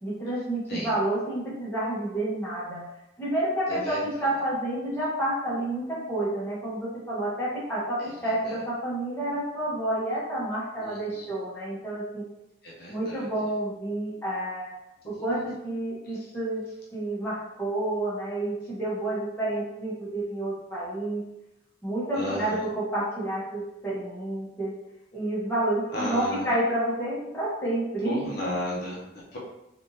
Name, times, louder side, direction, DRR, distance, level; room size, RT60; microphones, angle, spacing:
voice 1, 0.0-2.8 3.2-12.2 12.9-14.8 15.0-16.6 16.9-21.2 21.8-24.7 25.1-28.3, right 1 dB, 10° left, -9 dB, 1.1 m, -29 dB
voice 2, 10.8-11.3 12.6-13.2 22.1-22.6 25.9-26.5 28.0-29.4, left 1 dB, 55° left, -6 dB, 0.8 m, -34 dB
3.4 x 2.6 x 2.7 m, 0.88 s
head